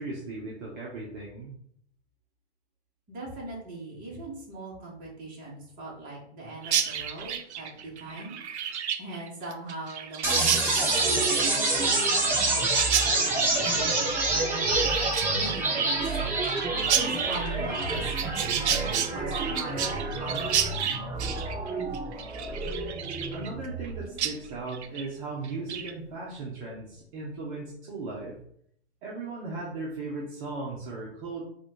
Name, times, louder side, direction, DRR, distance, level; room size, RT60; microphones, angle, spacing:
voice 1, 0.0-1.5 23.3-28.4 29.0-31.4, right 3 dB, 45° right, -4 dB, 1.3 m, -37 dB
voice 2, 3.1-8.4 9.0-15.0 15.3-16.4 16.9-19.8 20.2-20.6, right 2 dB, 25° right, -4 dB, 2.0 m, -40 dB
Chirp tweet, 6.6-23.9 24.2-24.3 24.7-25.1 25.4-25.9, right 8 dB, 70° right, 0.6 m, -31 dB
sound 1, 10.2-24.2, right 2 dB, 5° right, 0.3 m, -28 dB
4.1 x 2.8 x 4.7 m, 0.67 s
hypercardioid pair, 130°, 34 cm